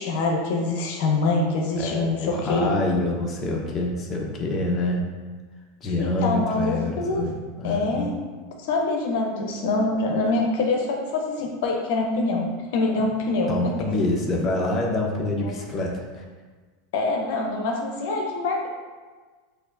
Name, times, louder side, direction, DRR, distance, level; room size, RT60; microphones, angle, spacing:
voice 1, 0.0-2.7 6.0-7.2 7.6-8.1 8.7-12.5 12.7-13.5 15.4-15.6 16.9-18.7, left 3 dB, 70° left, 1 dB, 0.7 m, -25 dB
voice 2, 1.8-5.1 5.8-8.1 13.5-16.2, left 2 dB, 25° left, -1 dB, 0.8 m, -26 dB
6.4 x 2.6 x 2.5 m, 1.4 s
supercardioid pair, 125°, 0 cm